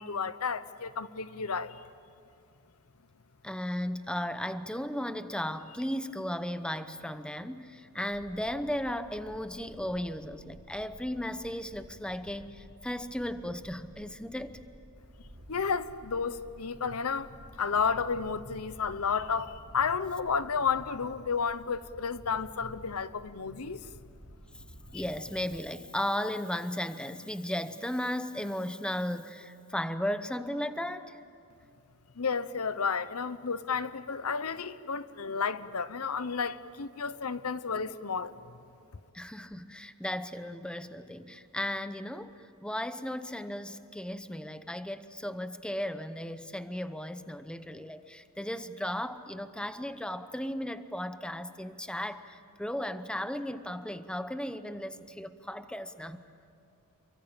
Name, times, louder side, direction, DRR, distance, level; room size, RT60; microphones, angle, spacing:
voice 1, 0.0-1.8 15.5-23.8 24.9-25.0 32.2-38.3, left 5 dB, 75° left, 0.9 m, -32 dB
voice 2, 3.4-14.7 24.9-31.2 39.1-56.2, left 1 dB, 5° left, 0.8 m, -35 dB
sound 1, 8.1-25.6, equal, 80° right, 3.6 m, -53 dB
28.5 x 23.5 x 8.9 m
head